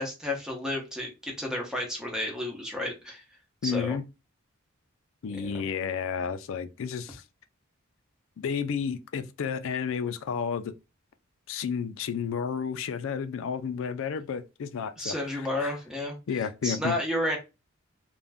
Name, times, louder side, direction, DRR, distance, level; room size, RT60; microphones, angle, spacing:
voice 1, 0.0-3.2 3.6-4.0 5.3-5.6 15.0-16.1 16.6-17.4, left 1 dB, 5° right, 0.8 m, -31 dB
voice 2, 3.6-4.0 5.2-7.2 8.4-10.7 11.5-15.8 16.3-16.9, left 6 dB, 65° left, 0.4 m, -31 dB
2.5 x 2.1 x 3.3 m
head